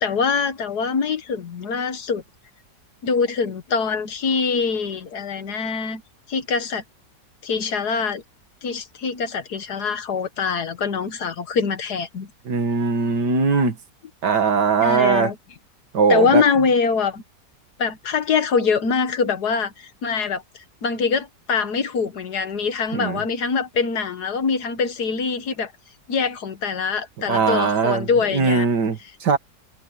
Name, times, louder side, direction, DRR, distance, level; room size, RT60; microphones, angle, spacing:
voice 1, 0.0-2.2 3.0-6.0 6.3-6.8 7.4-8.2 8.6-12.3 14.8-15.4 16.1-17.2 17.8-20.4 20.8-25.7 26.1-28.7, left 5 dB, 65° left, 1.9 m, -23 dB
voice 2, 12.5-13.8 14.2-15.3 15.9-16.4 22.9-23.2 27.3-29.4, right 5 dB, 70° right, 2.3 m, -20 dB
omnidirectional pair, 1.9 m